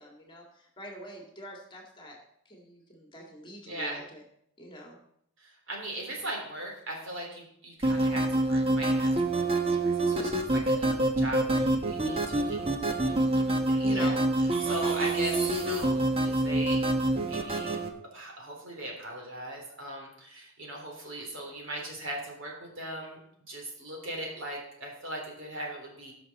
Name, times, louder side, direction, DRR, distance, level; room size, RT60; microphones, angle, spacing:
voice 1, 0.0-4.2 4.6-5.0 13.8-14.3, equal, 20° left, 0 dB, 1.9 m, -45 dB
voice 2, 3.7-4.0 5.4-14.2 14.6-16.8 17.2-17.8 18.1-23.2 23.5-26.1, right 1 dB, 55° right, -1 dB, 3.4 m, -39 dB
sound 1, 7.8-17.9, right 2 dB, 25° right, 1.1 m, -26 dB
17.5 x 6.1 x 4.1 m, 0.72 s
head